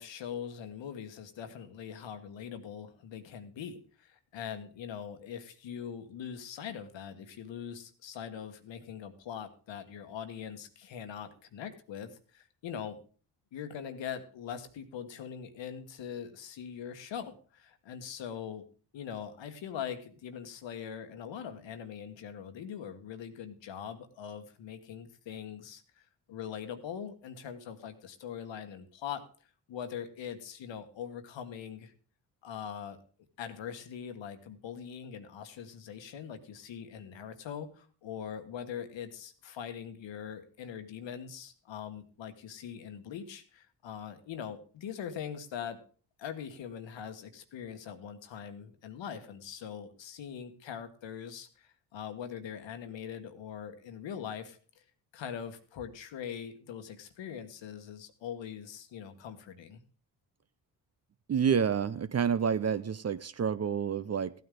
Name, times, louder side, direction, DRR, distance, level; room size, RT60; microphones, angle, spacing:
voice 1, 0.0-13.0 13.5-18.6 18.9-29.2 29.7-31.9 32.4-33.0 33.4-45.8 46.2-54.6 55.1-59.8, left 8 dB, 65° left, 9 dB, 1.4 m, -42 dB
voice 2, 61.3-64.3, right 7 dB, 30° right, 14 dB, 0.7 m, -29 dB
15.5 x 9.4 x 3.8 m, 0.41 s
hypercardioid pair, 50°, 48 cm